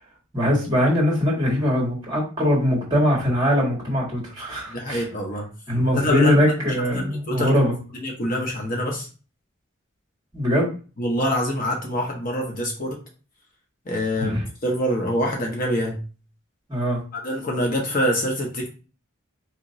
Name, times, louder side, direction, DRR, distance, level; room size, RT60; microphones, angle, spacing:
voice 1, 0.3-5.0 5.7-7.7 10.3-10.7 14.2-14.4 16.7-17.0, equal, 20° right, -4 dB, 1.5 m, -21 dB
voice 2, 4.7-5.5 5.9-6.3 6.9-7.5 7.9-9.1 11.0-13.0 13.9-14.4 14.6-16.0 17.1-18.7, equal, 40° left, 0 dB, 0.8 m, -25 dB
4.3 x 2.9 x 2.6 m, 0.35 s
head